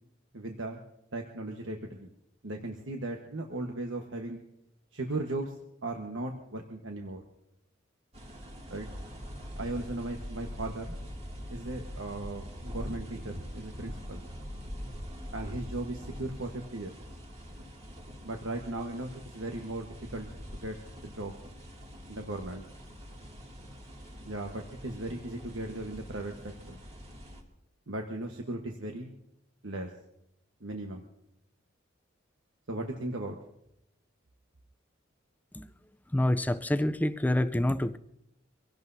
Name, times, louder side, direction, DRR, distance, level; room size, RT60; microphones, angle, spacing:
voice 1, 0.3-0.8 1.1-2.1 2.4-4.4 4.9-7.2 8.7-8.9 9.6-11.0 11.5-14.2 15.3-16.9 18.2-20.3 20.6-20.8 21.0-21.3 22.1-22.6 24.2-26.8 27.9-29.1 29.6-29.9 30.6-31.0 32.7-33.4, right 2 dB, 75° right, 1.3 m, -37 dB
sound 1, 8.1-27.4, equal, 35° right, 2.4 m, -44 dB
voice 2, 36.1-38.0, left 1 dB, 10° left, 0.5 m, -27 dB
25.0 x 17.0 x 2.7 m
head